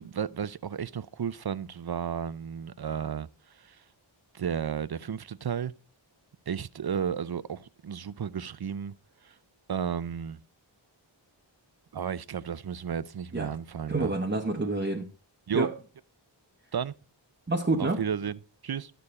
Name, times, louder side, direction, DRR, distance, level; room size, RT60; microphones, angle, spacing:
voice 1, 0.0-3.8 4.3-5.7 6.5-8.9 9.2-9.4 9.7-10.4 11.9-14.1 15.5-15.7 16.7-16.9 17.8-18.9, right 7 dB, 55° right, 0.6 m, -33 dB
voice 2, 13.9-15.1 15.5-15.7 17.5-18.0, right 2 dB, 25° right, 0.9 m, -28 dB
11.0 x 6.8 x 4.1 m
wide cardioid pair, 50°, 47 cm